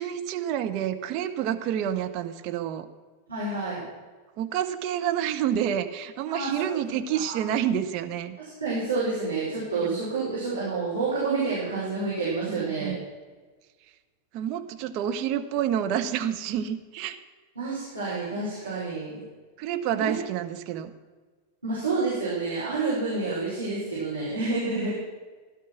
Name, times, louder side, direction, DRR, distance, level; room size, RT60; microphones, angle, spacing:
voice 1, 0.0-2.9 4.4-8.4 9.9-10.0 12.5-13.1 14.3-17.2 19.6-20.9 24.8-24.9, right 9 dB, 40° right, 6 dB, 1.2 m, -29 dB
voice 2, 3.3-3.9 6.3-6.6 7.1-7.4 8.4-12.9 17.6-19.2 19.9-20.1 21.6-24.9, right 3 dB, 80° right, -8 dB, 5.3 m, -29 dB
16.0 x 12.0 x 6.0 m, 1.4 s
figure-of-eight pair, 90°, 0 cm